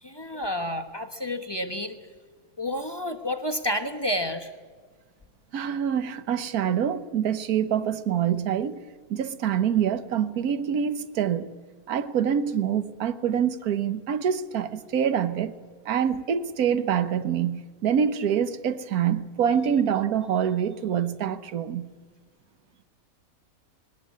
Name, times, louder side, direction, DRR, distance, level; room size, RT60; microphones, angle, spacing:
voice 1, 0.0-2.0 2.6-4.5, left 1 dB, 20° left, 1.0 m, -30 dB
voice 2, 5.5-11.5 11.9-15.5 15.8-21.9, right 8 dB, 85° right, 1.4 m, -26 dB
19.5 x 18.5 x 8.4 m
omnidirectional pair, 1.5 m